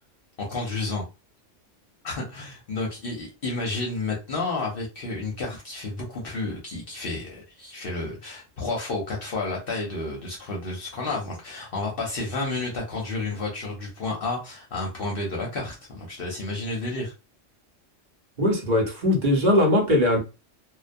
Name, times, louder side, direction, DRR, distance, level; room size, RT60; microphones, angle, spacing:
voice 1, 0.4-1.1 2.0-17.1, left 3 dB, 55° left, 0.8 m, -31 dB
voice 2, 18.4-20.2, left 1 dB, 45° right, 0.9 m, -20 dB
2.3 x 2.1 x 2.5 m
omnidirectional pair, 1.3 m